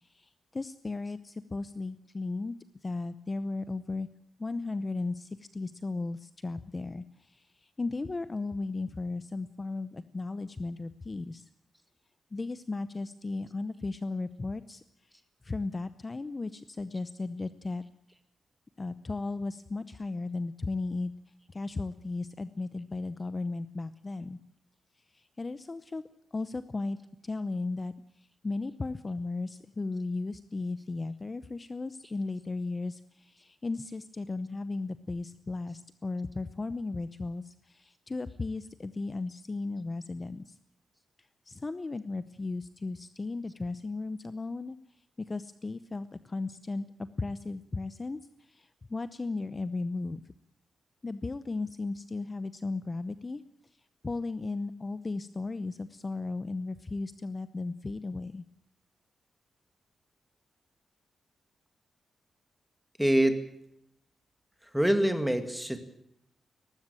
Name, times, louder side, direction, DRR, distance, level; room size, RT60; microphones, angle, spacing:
voice 1, 0.0-2.6 2.8-4.1 4.4-11.5 12.3-15.1 15.4-17.8 18.8-21.1 21.5-24.4 25.1-26.0 26.3-27.0 27.2-40.6 41.5-44.8 45.2-50.2 51.0-53.4 54.0-58.4, left 3 dB, 25° left, 13 dB, 0.7 m, -36 dB
voice 2, 63.0-63.4 64.7-65.8, right 1 dB, 5° right, 8 dB, 2.1 m, -25 dB
19.0 x 15.0 x 9.0 m, 0.76 s
wide cardioid pair, 125°, 0 cm